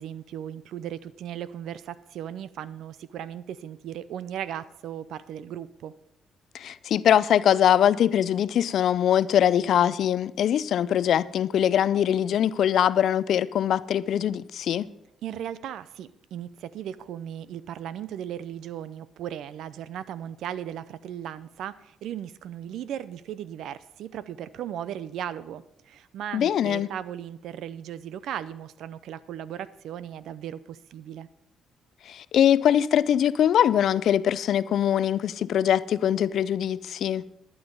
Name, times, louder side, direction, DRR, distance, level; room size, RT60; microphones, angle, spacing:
voice 1, 0.0-5.9 15.2-31.3, right 10 dB, 80° right, 0.5 m, -37 dB
voice 2, 6.5-14.9 26.3-26.9 32.1-37.2, left 10 dB, 70° left, 0.4 m, -22 dB
12.0 x 9.5 x 5.3 m
cardioid pair, 90°, 0 cm